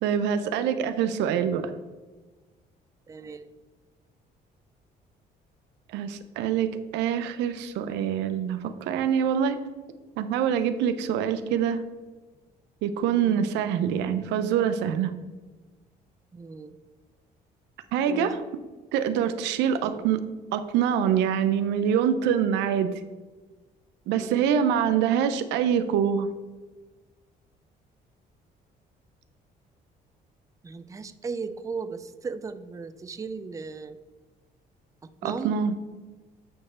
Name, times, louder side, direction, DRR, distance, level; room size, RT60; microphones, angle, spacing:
voice 1, 0.0-1.7 5.9-9.6 10.2-11.8 12.8-15.1 17.9-18.4 18.9-20.2 20.5-22.9 24.1-26.3 35.2-35.8, right 8 dB, 90° right, 11 dB, 0.5 m, -25 dB
voice 2, 3.1-3.5 13.1-13.4 16.3-16.8 18.0-18.3 19.8-20.1 24.2-24.5 30.6-34.0 35.2-35.6, right 4 dB, 20° right, 11 dB, 0.4 m, -37 dB
8.7 x 3.2 x 4.2 m, 1.3 s
cardioid pair, 85°, 18 cm